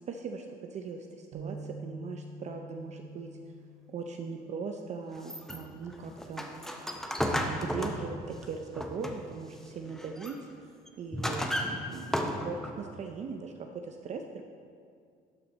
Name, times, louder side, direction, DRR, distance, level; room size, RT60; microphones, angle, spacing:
voice 1, 0.1-3.3 3.9-6.5 7.3-10.4 11.0-14.4, right 5 dB, 45° right, 4 dB, 0.5 m, -40 dB
sound 1, 1.3-5.6 6.1-6.3 7.1-7.6, right 2 dB, 85° right, 1.1 m, -47 dB
sound 2, 5.2-9.4 9.8-10.4 10.9-12.8, equal, ahead, 0.6 m, -34 dB
12.0 x 4.3 x 4.1 m, 2.3 s
cardioid pair, 110°, 17 cm